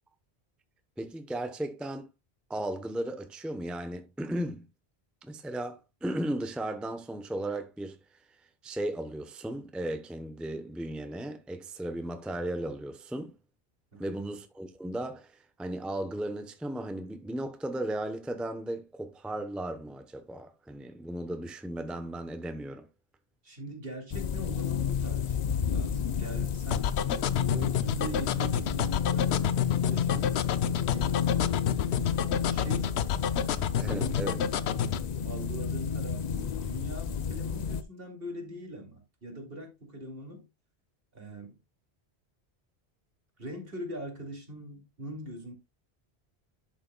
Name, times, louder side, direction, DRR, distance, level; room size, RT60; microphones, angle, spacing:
voice 1, 1.0-2.1 2.5-4.7 5.2-8.0 8.6-13.3 14.0-22.9 33.8-34.4, right 1 dB, ahead, 0.7 m, -35 dB
voice 2, 23.4-27.0 27.5-30.3 30.8-31.1 31.7-33.1 33.8-34.2 35.2-40.4 41.1-41.6 43.4-45.5, right 1 dB, 60° right, 2.5 m, -42 dB
sound 1, 24.1-37.8, left 7 dB, 50° left, 0.6 m, -31 dB
sound 2, 26.7-35.0, left 9 dB, 90° left, 0.9 m, -29 dB
11.0 x 6.5 x 2.2 m
omnidirectional pair, 1.1 m